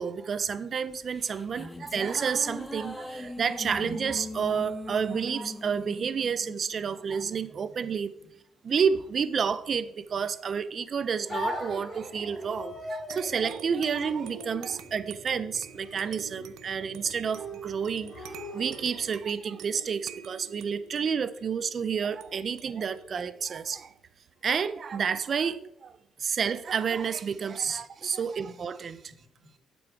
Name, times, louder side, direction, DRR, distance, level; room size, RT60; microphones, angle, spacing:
voice 1, 0.0-8.1 8.6-18.2 18.5-23.9 24.4-25.9 26.2-29.0, right 6 dB, 40° right, 0.5 m, -30 dB
sound 1, 0.9-7.5, left 2 dB, 10° left, 0.8 m, -41 dB
voice 2, 8.2-8.7 14.7-14.8 24.3-24.4 27.6-28.1 28.3-28.4 28.8-29.6, left 1 dB, 65° left, 3.2 m, -61 dB
sound 2, 11.3-19.2, left 1 dB, 25° left, 3.3 m, -40 dB
sound 3, 13.1-24.2, right 10 dB, 85° right, 0.6 m, -48 dB
11.0 x 6.2 x 4.6 m
cardioid pair, 135°, 0 cm